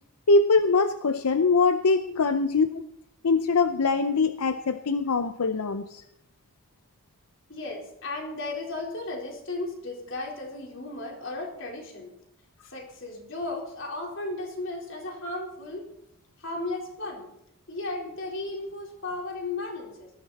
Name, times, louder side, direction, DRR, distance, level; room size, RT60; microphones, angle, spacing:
voice 1, 0.3-2.9 3.2-6.0, left 4 dB, 85° left, 11 dB, 0.6 m, -23 dB
voice 2, 7.5-12.1 12.6-15.9 16.4-17.3 17.7-20.1, left 2 dB, 55° left, 0 dB, 4.1 m, -35 dB
18.5 x 14.5 x 4.2 m, 0.80 s
head